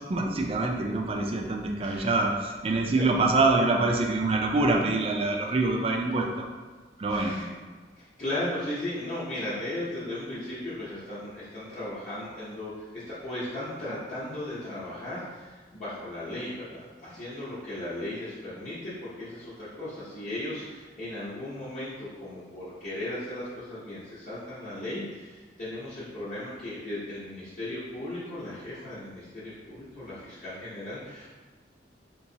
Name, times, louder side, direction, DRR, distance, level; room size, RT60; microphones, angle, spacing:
voice 1, 0.0-6.5 7.0-7.4, right 2 dB, 30° right, 1 dB, 0.4 m, -25 dB
voice 2, 1.8-2.2 7.1-7.5 8.0-31.3, left 1 dB, 40° left, -11 dB, 0.8 m, -36 dB
3.4 x 3.0 x 2.7 m, 1.3 s
head